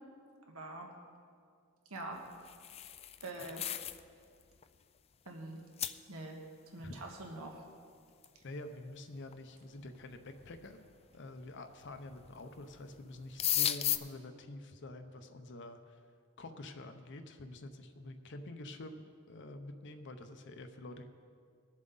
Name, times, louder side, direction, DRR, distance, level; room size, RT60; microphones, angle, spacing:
voice 1, 0.5-0.9 1.9-2.2 3.2-3.6 5.2-5.6 6.1-6.4 6.7-7.6, right 2 dB, 80° right, 1 dB, 1.5 m, -44 dB
sound 1, 2.3-4.0 4.4-4.6 5.3-5.4 5.8-6.0 8.2-8.3 9.3-9.4 10.1-10.6 11.8-12.3 12.6-12.8 13.0-14.0, left 11 dB, 30° left, 0.3 m, -35 dB
voice 2, 8.4-10.8 11.1-16.0 16.4-21.1, left 2 dB, 55° left, 7 dB, 0.7 m, -47 dB
20.5 x 7.4 x 3.9 m, 2.2 s
head